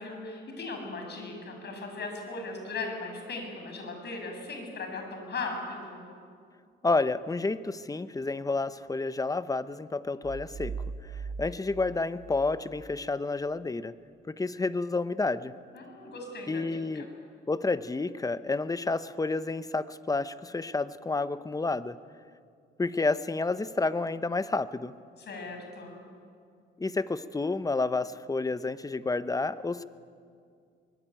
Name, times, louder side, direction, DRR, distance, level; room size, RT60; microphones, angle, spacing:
voice 1, 0.0-6.0 15.7-17.1 25.2-26.0, left 3 dB, 60° left, 4 dB, 6.9 m, -38 dB
voice 2, 6.8-10.7 11.1-13.9 14.3-15.5 16.5-17.1 17.5-22.0 22.8-24.9 26.8-29.9, left 3 dB, 15° left, 14 dB, 0.9 m, -30 dB
sound 1, 10.2-13.0, right 5 dB, 35° right, 2.1 m, -40 dB
23.5 x 21.0 x 9.1 m, 2.3 s
cardioid pair, 90°, 20 cm